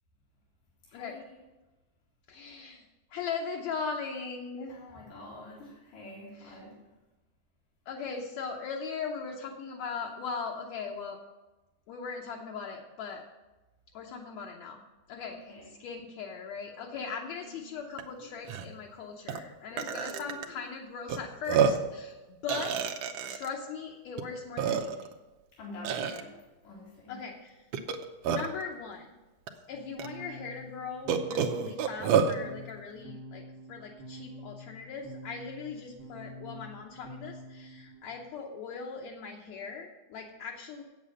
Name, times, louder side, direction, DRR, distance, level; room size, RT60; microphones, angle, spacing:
voice 1, 0.8-1.4 4.7-6.7 15.3-15.7 16.9-17.1 17.4-18.3 19.7-20.6 25.6-26.3 26.6-27.2, left 2 dB, 90° left, -5 dB, 3.7 m, -47 dB
voice 2, 2.3-2.9 3.1-4.8 6.3-6.6 7.9-11.2 11.9-13.3 13.9-14.8 15.1-22.8 23.3-25.1 27.1-27.6 28.2-29.1 29.7-33.4 33.7-40.8, left 5 dB, 70° left, 0 dB, 1.9 m, -39 dB
Burping eructation, 18.0-18.1 18.4-18.7 19.3-19.4 19.8-20.5 21.1-21.2 21.5-21.9 22.5-23.5 24.2-24.3 24.6-25.1 25.8-26.2 27.7-28.6 29.5-29.6 30.0-30.1 31.1-32.4, right 7 dB, 75° right, 1.5 m, -28 dB
sound 1, 29.7-38.3, equal, 55° right, 1.6 m, -47 dB
8.6 x 8.3 x 6.4 m, 1.1 s
omnidirectional pair, 3.7 m